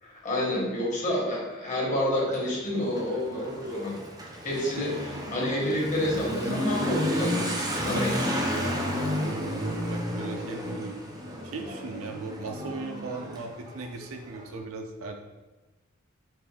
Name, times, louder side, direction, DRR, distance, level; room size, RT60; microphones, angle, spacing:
voice 1, 0.0-3.9 4.4-4.9 5.3-8.4, left 1 dB, 40° left, -4 dB, 1.2 m, -29 dB
Motorcycle / Accelerating revving vroom, 2.1-14.5, equal, 20° right, 0.5 m, -32 dB
voice 2, 4.8-5.2 9.2-11.1 11.4-15.2, right 3 dB, 75° right, 4 dB, 0.5 m, -37 dB
4.2 x 2.5 x 3.5 m, 1.1 s
head